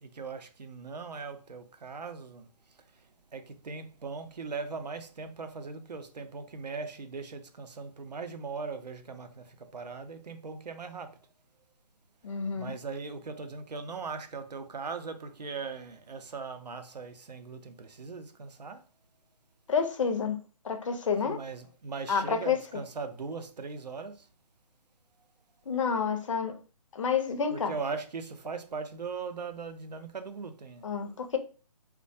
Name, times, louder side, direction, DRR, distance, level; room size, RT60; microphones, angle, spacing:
voice 1, 0.0-2.5 3.3-11.2 12.5-18.8 21.2-24.3 27.5-30.9, right 4 dB, 85° right, 0.5 m, -39 dB
voice 2, 12.2-12.7 19.7-20.4 20.6-21.4 22.1-22.8 25.7-26.6 26.9-27.8 30.8-31.4, left 6 dB, 50° left, 0.5 m, -29 dB
2.2 x 2.1 x 2.6 m
figure-of-eight pair, 145°, 21 cm